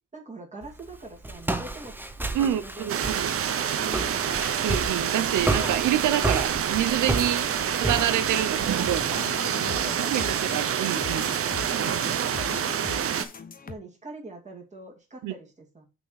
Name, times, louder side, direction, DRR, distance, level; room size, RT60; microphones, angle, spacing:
voice 1, 0.1-1.9 2.4-2.9 3.7-4.3 8.8-10.4 11.7-13.0 13.7-15.9, right 2 dB, 25° right, 2.4 m, -43 dB
Walk footsteps, 0.6-9.2, right 2 dB, 5° right, 0.8 m, -32 dB
voice 2, 2.3-3.3 4.6-7.5 7.8-9.0 10.1-11.3 15.2-15.3, right 11 dB, 80° right, 0.9 m, -27 dB
sound 1, 2.9-13.2, right 8 dB, 50° right, 0.7 m, -27 dB
sound 2, 8.5-13.7, left 5 dB, 30° left, 0.8 m, -40 dB
6.0 x 3.5 x 5.7 m
cardioid pair, 90°, 30 cm